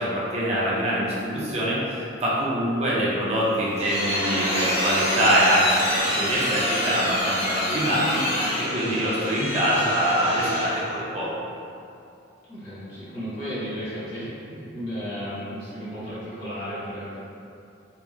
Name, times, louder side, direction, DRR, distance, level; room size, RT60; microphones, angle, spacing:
voice 1, 0.0-2.0 2.2-8.2 8.6-11.3, equal, 30° right, -6 dB, 0.4 m, -24 dB
sound 1, 3.4-10.9, left 1 dB, 30° left, 0.8 m, -27 dB
voice 2, 8.3-9.1 12.5-17.2, equal, 55° left, -12 dB, 1.1 m, -34 dB
3.0 x 2.2 x 2.3 m, 2.6 s
head